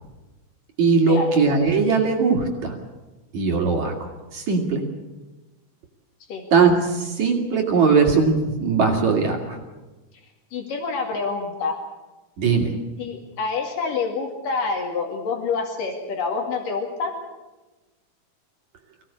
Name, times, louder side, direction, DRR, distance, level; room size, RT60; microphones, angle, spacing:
voice 1, 0.8-2.8 3.3-4.8 6.5-9.6 12.4-12.7, right 4 dB, 60° right, 1 dB, 3.8 m, -20 dB
voice 2, 10.5-11.8 13.0-17.1, left 4 dB, 75° left, 2 dB, 3.9 m, -27 dB
24.5 x 17.0 x 8.6 m, 1.1 s
omnidirectional pair, 3.9 m